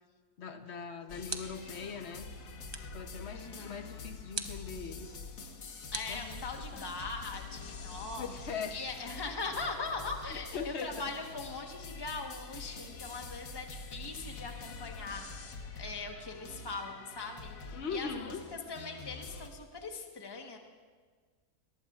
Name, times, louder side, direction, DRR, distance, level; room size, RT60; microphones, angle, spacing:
voice 1, 0.4-2.2 2.9-5.1 6.1-6.5 6.7-6.9 8.2-8.8 10.3-11.1 17.7-18.4, left 5 dB, 50° left, 8 dB, 1.0 m, -41 dB
sound 1, 0.6-1.8 2.7-3.1 4.3-4.7 5.9-6.8, right 3 dB, 35° right, 0.4 m, -42 dB
sound 2, 1.1-19.5, left 4 dB, 85° left, 1.8 m, -46 dB
voice 2, 3.3-3.8 5.9-20.6, left 3 dB, 15° left, 3 dB, 1.1 m, -41 dB
22.0 x 19.0 x 2.4 m, 1.5 s
omnidirectional pair, 1.6 m